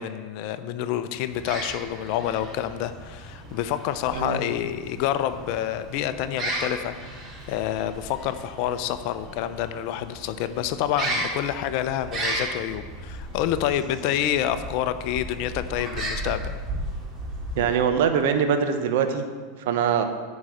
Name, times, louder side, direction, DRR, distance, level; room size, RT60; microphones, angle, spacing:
voice 1, 0.0-6.9 7.5-16.5, left 11 dB, 60° left, 11 dB, 0.6 m, -28 dB
sound 1, 1.3-18.0, right 1 dB, 35° right, 3.5 m, -35 dB
voice 2, 17.5-19.2 19.7-20.0, right 7 dB, 70° right, 7 dB, 1.1 m, -22 dB
9.6 x 5.5 x 7.7 m, 1.5 s
hypercardioid pair, 100°, 0 cm